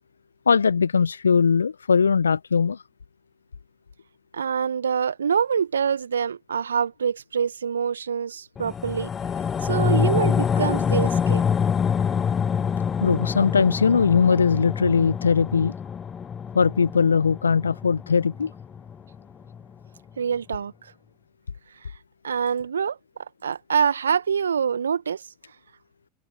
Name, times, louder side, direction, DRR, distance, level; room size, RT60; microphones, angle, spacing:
voice 1, 0.5-2.8 13.0-15.7 16.5-18.5, left 5 dB, 80° left, 0.7 m, -20 dB
voice 2, 4.3-9.1 9.6-11.4 20.2-20.7 22.2-23.0 23.4-25.2, right 7 dB, 75° right, 1.1 m, -25 dB
sound 1, 8.6-19.2 19.5-19.6, left 7 dB, 25° left, 0.7 m, -26 dB
open air
figure-of-eight pair, 85°, 0 cm